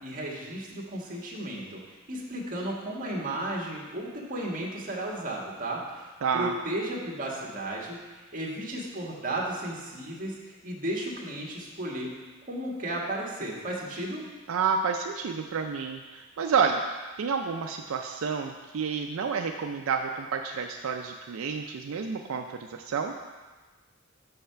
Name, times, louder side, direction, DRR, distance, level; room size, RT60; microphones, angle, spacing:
voice 1, 0.0-12.2 12.5-14.2, right 1 dB, 40° right, -2 dB, 1.6 m, -34 dB
voice 2, 6.2-6.5 14.5-16.8 17.2-22.4 22.7-23.1, right 6 dB, 80° right, 4 dB, 0.4 m, -29 dB
6.5 x 5.5 x 5.7 m, 1.3 s
head